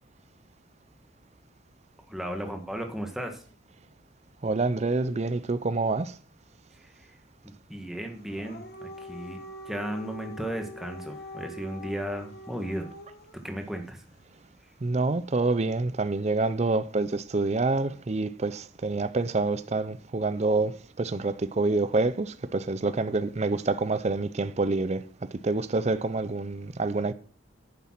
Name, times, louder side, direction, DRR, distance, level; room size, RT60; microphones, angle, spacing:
voice 1, 2.1-3.4 6.8-7.1 7.4-12.9 13.4-14.0, equal, ahead, 1.5 m, -35 dB
voice 2, 4.4-6.1 14.8-25.0 25.4-27.1, right 3 dB, 35° right, 0.5 m, -27 dB
Dog, 8.2-13.4, left 1 dB, 50° left, 1.6 m, -43 dB
9.5 x 7.3 x 5.9 m
head